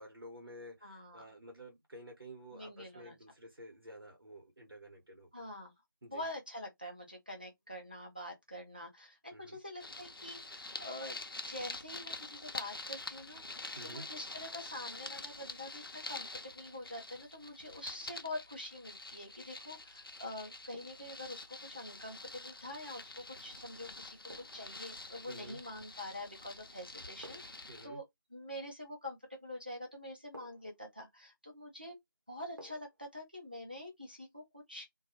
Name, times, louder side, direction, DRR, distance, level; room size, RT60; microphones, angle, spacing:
voice 1, 0.0-5.4 6.0-6.2 9.3-9.6 13.8-14.1 25.3-25.6 27.7-28.0, right 1 dB, 85° right, 0.9 m, -51 dB
voice 2, 0.8-1.3 2.5-3.2 5.3-5.7 6.1-11.2 11.5-13.4 13.8-24.2 24.5-28.0 28.3-31.9 32.3-34.9, left 1 dB, 25° right, 0.5 m, -46 dB
sound 1, 9.8-27.9, left 2 dB, 75° left, 0.5 m, -47 dB
sound 2, 19.2-19.5 20.7-21.2 23.2-23.4 24.3-24.8 26.1-26.5 27.2-27.7 29.3-29.5 30.3-30.8 32.6-33.0 33.4-33.5, equal, 55° right, 0.8 m, -55 dB
2.2 x 2.1 x 2.8 m
figure-of-eight pair, 180°, 12 cm